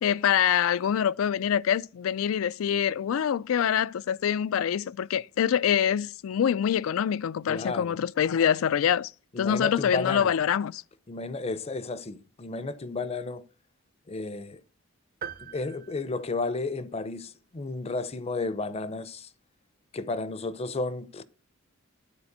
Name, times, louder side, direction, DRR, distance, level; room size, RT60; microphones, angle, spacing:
voice 1, 0.0-9.1 9.4-10.8, left 8 dB, 75° left, 0.3 m, -25 dB
voice 2, 7.5-7.9 9.3-10.3 11.1-13.4 14.1-14.6 15.4-19.3 19.9-21.2, left 3 dB, 30° left, 0.6 m, -33 dB
sound 1, 15.2-17.0, right 7 dB, 45° right, 0.7 m, -43 dB
9.8 x 4.2 x 6.6 m
head